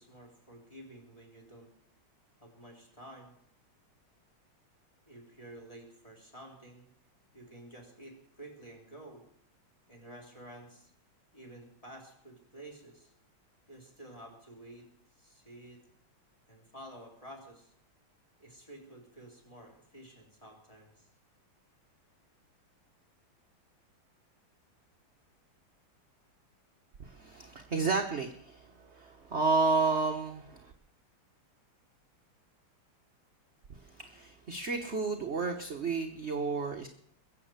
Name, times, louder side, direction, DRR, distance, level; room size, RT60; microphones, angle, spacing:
voice 1, 0.0-1.7 2.4-3.3 5.1-6.9 7.3-9.2 9.9-10.9 11.3-13.1 13.7-15.8 16.5-17.7 18.4-21.1, right 1 dB, 15° left, 0 dB, 4.0 m, -51 dB
voice 2, 27.0-30.7 33.8-36.9, right 4 dB, 40° right, 4 dB, 1.1 m, -31 dB
22.0 x 7.7 x 8.0 m, 0.68 s
omnidirectional pair, 2.3 m